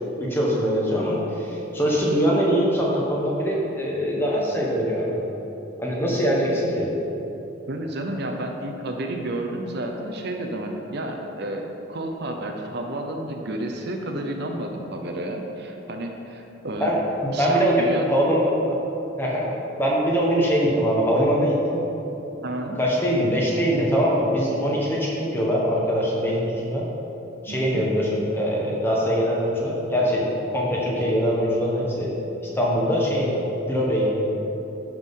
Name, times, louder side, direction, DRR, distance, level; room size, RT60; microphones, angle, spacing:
voice 1, 0.2-5.2 5.8-6.9 16.8-17.0 17.2-18.5 19.2-19.5 19.8-21.8 22.7-26.8 27.4-32.1 32.5-33.4 33.7-34.2, equal, 10° left, -4 dB, 1.4 m, -22 dB
voice 2, 7.7-16.9 17.3-18.1 22.4-22.8 27.5-27.8, right 1 dB, 55° right, 3 dB, 0.7 m, -31 dB
11.0 x 5.9 x 3.8 m, 3.0 s
head